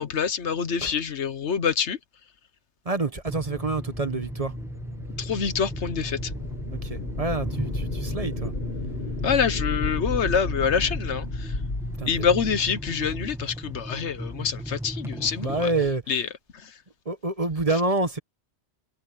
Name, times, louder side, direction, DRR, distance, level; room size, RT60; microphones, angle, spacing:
voice 1, 0.0-2.0 5.2-6.3 9.2-11.6 12.1-15.7 16.1-16.8, left 6 dB, 75° left, 1.3 m, -26 dB
voice 2, 2.8-4.5 6.7-8.5 12.0-12.3 15.4-16.0 17.0-18.2, right 3 dB, 30° right, 1.3 m, -27 dB
sound 1, 3.3-15.9, equal, ahead, 1.6 m, -36 dB
sound 2, 3.8-13.7, left 3 dB, 50° left, 2.0 m, -34 dB
omnidirectional pair, 1.2 m